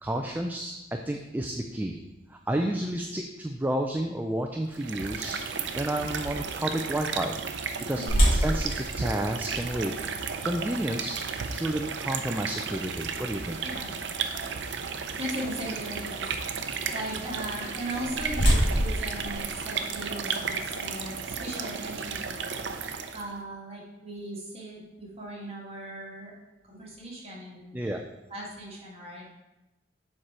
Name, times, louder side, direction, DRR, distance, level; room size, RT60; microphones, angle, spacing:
voice 1, 0.0-0.7 1.0-2.0 2.3-5.4 5.8-7.3 7.9-8.0 8.3-9.9 10.4-13.6 27.7-28.0, right 1 dB, 10° right, 3 dB, 0.4 m, -31 dB
sound 1, 4.7-23.3, right 5 dB, 80° right, 0.6 m, -34 dB
voice 2, 7.9-8.3 13.6-13.9 15.2-22.8 23.1-26.3 26.6-27.9 28.3-29.3, right 1 dB, 35° right, -4 dB, 1.8 m, -38 dB
sound 2, 8.1-14.0 14.6-14.7 15.3-15.5 17.6-20.2, equal, 50° left, 2.7 m, -28 dB
7.4 x 4.7 x 4.4 m, 0.99 s
head